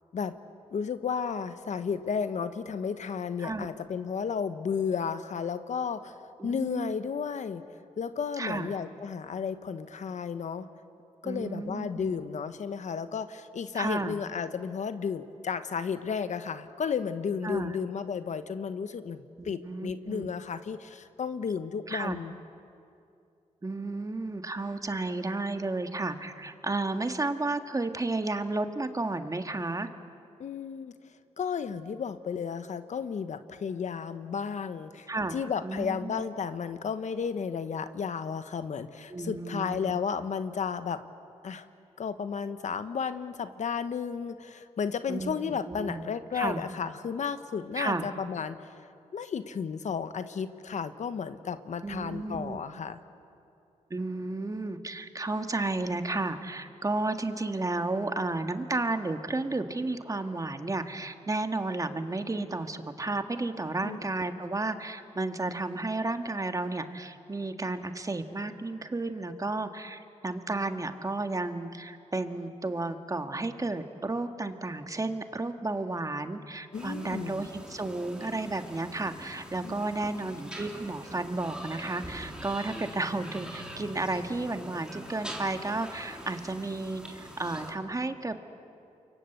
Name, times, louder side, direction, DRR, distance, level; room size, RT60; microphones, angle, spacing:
voice 1, 0.7-6.2 6.4-7.7 8.0-10.7 11.2-22.4 30.4-30.9 31.4-41.0 41.4-41.7 42.0-48.7 49.1-53.0 63.8-64.0 76.7-77.4 79.6-80.3, left 6 dB, 70° left, 11 dB, 1.1 m, -33 dB
voice 2, 6.4-6.9 8.4-8.7 11.2-12.2 13.7-14.2 17.4-17.8 19.4-20.3 21.9-22.2 23.6-29.9 35.1-35.4 35.6-36.2 39.1-40.0 45.1-45.3 45.7-46.1 46.3-46.6 47.7-48.1 51.8-52.6 53.9-88.4, right 2 dB, 25° right, 7 dB, 1.7 m, -32 dB
sound 1, 76.7-87.7, equal, 5° right, 3.8 m, -44 dB
29.0 x 24.0 x 8.0 m, 2.6 s
cardioid pair, 75°, 13 cm